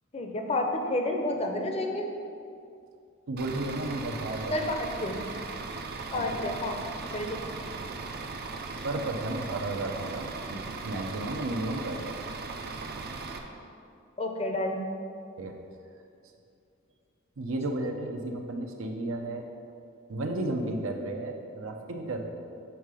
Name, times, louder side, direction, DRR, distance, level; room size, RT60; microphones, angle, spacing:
voice 1, 0.1-2.1 4.5-5.2 6.1-6.8 7.1-7.3 14.2-14.8, left 1 dB, 30° left, 3 dB, 0.6 m, -30 dB
voice 2, 3.3-4.5 6.1-6.2 7.8-8.0 8.8-12.2 15.4-15.5 17.4-19.5 20.1-22.3, right 2 dB, 85° right, 3 dB, 0.7 m, -33 dB
Bus / Idling, 3.4-13.4, right 4 dB, 50° right, 0.5 m, -38 dB
7.1 x 3.7 x 4.8 m, 2.5 s
head